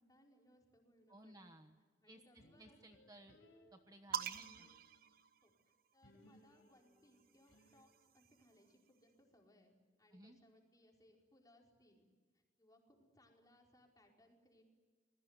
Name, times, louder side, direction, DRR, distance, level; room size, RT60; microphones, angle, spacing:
voice 1, 0.0-1.5 2.0-3.0 5.4-12.0 12.3-14.6, left 1 dB, 20° left, 0 dB, 4.9 m, -69 dB
voice 2, 1.1-1.7 2.1-3.4 3.7-4.7 10.1-10.4, right 1 dB, 20° right, 6 dB, 1.2 m, -60 dB
sound 1, 2.4-5.2 6.0-8.0, equal, 90° left, 4.8 m, -67 dB
sound 2, 4.1-5.9 7.0-8.7, right 8 dB, 50° right, 1.1 m, -47 dB
27.5 x 21.0 x 8.3 m, 1.4 s
head